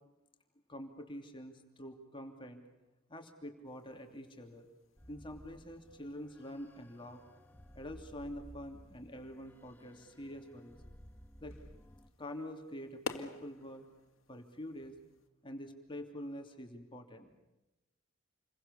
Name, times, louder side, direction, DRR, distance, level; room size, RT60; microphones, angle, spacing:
voice 1, 0.7-2.6 3.1-4.7 5.1-7.2 7.7-10.8 11.4-11.6 12.2-13.9 14.3-15.0 15.4-17.4, equal, 25° left, 4 dB, 2.9 m, -46 dB
sound 1, 3.6-15.3, left 4 dB, 75° left, 2.2 m, -52 dB
sound 2, 5.0-12.1, equal, 10° left, 1.2 m, -57 dB
29.0 x 23.0 x 7.0 m, 1.0 s
head